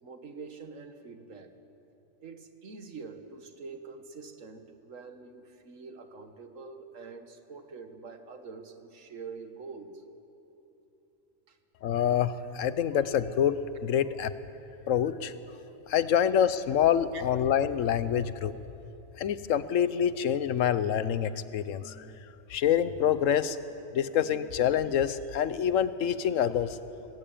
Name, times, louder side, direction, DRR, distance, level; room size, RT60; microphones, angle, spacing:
voice 1, 0.0-1.5 2.2-10.0 11.5-11.6 17.1-17.2, right 4 dB, 80° right, 8 dB, 1.7 m, -45 dB
voice 2, 11.8-14.3 14.9-15.3 15.9-18.5 19.2-22.1 22.5-23.6 23.9-26.8, left 9 dB, 80° left, 14 dB, 1.1 m, -26 dB
19.0 x 15.5 x 8.8 m, 2.9 s
omnidirectional pair, 1.3 m